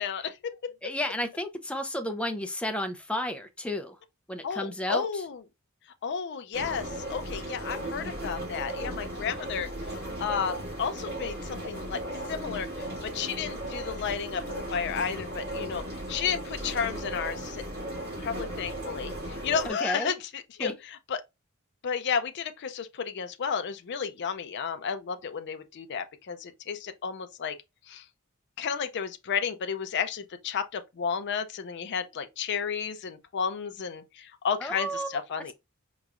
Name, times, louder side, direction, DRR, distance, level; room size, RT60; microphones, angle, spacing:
voice 1, 0.0-0.7 4.4-5.4 6.0-9.7 10.2-12.0 12.3-17.6 18.2-21.2 21.8-27.6 27.9-28.0 28.6-35.5, left 6 dB, 55° left, 0.4 m, -32 dB
voice 2, 0.8-3.9 4.3-5.1 19.8-20.1 20.6-20.7 34.6-35.1, left 1 dB, 5° left, 0.5 m, -32 dB
sound 1, 6.5-19.7, right 1 dB, 50° right, 2.1 m, -36 dB
4.5 x 3.0 x 2.4 m
head